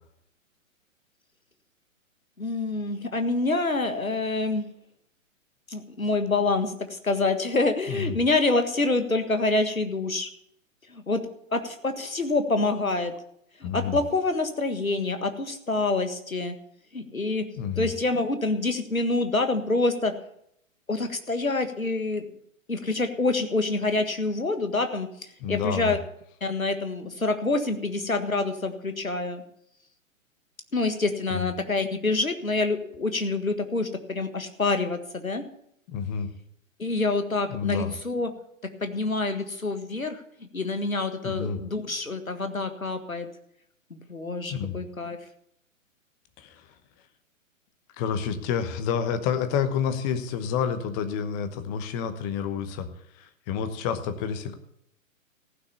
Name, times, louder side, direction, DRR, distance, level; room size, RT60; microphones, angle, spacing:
voice 1, 2.4-4.7 5.7-10.3 10.9-11.2 11.5-13.1 13.6-16.5 16.9-17.4 17.8-20.1 20.9-22.2 22.7-26.0 26.4-29.4 30.7-35.4 36.8-38.3 38.8-43.3 43.9-45.2, left 3 dB, 85° left, 8 dB, 1.8 m, -27 dB
voice 2, 13.6-14.0 17.6-17.9 25.4-26.0 31.3-31.5 35.9-36.3 37.5-37.9 41.2-41.6 44.5-44.8 46.4-46.7 48.0-52.9 53.1-54.5, left 7 dB, 20° left, 10 dB, 1.0 m, -29 dB
15.0 x 6.3 x 8.3 m, 0.73 s
figure-of-eight pair, 120°, 41 cm